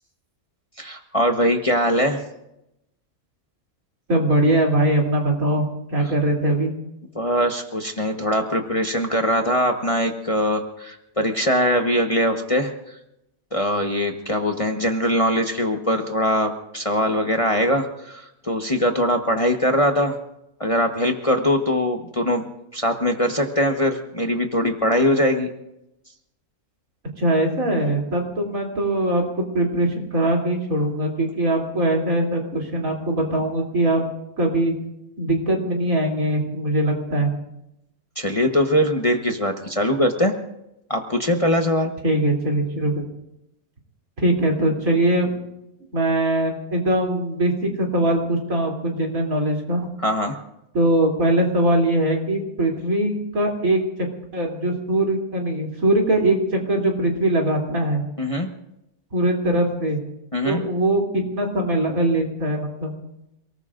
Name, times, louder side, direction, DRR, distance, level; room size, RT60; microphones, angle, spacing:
voice 1, 0.8-2.2 7.1-12.7 13.5-20.2 20.6-22.4 22.7-25.5 38.2-40.3 40.9-41.9 50.0-50.4 58.2-58.5 60.3-60.6, equal, 25° left, 3 dB, 1.1 m, -21 dB
voice 2, 4.1-6.7 27.2-34.0 34.4-34.7 35.2-37.3 42.0-43.0 44.2-45.3 45.9-49.9 50.7-54.1 54.3-58.0 59.1-60.0 60.4-62.9, right 1 dB, 70° right, 0 dB, 3.6 m, -21 dB
29.0 x 19.0 x 2.5 m, 0.86 s
omnidirectional pair, 1.5 m